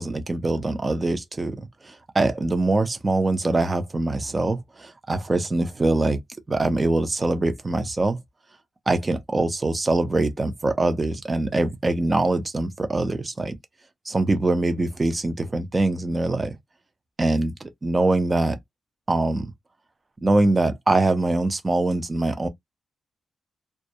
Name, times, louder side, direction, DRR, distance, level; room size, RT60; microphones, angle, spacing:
voice 1, 0.0-1.6 1.8-6.2 6.5-8.2 8.9-13.6 14.1-16.6 17.2-17.5 17.8-18.6 19.1-19.5 20.2-22.5, right 2 dB, 20° right, 0.5 m, -23 dB
2.2 x 2.0 x 2.7 m
wide cardioid pair, 135°, 0 cm